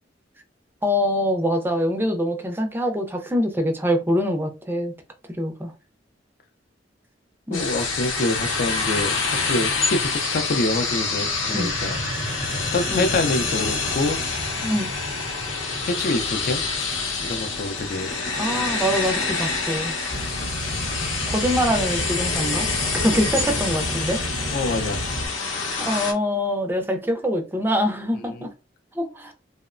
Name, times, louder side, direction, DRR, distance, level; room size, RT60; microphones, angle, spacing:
voice 1, 0.8-4.9 5.3-5.7 7.5-7.6 11.5-11.7 12.9-13.1 14.6-14.9 18.4-19.9 21.3-22.7 22.9-24.2 25.8-28.5 28.9-29.3, equal, 10° right, 0.4 m, -24 dB
sound 1, 7.5-26.1, left 4 dB, 85° left, 0.7 m, -27 dB
voice 2, 7.5-12.0 12.7-14.2 15.8-16.6 17.2-18.1 24.5-25.0 28.3-28.5, left 2 dB, 50° left, 0.4 m, -26 dB
sound 2, 11.3-18.9, right 1 dB, 65° right, 0.5 m, -37 dB
sound 3, 20.1-25.3, right 1 dB, 25° left, 0.7 m, -31 dB
2.8 x 2.0 x 2.4 m
head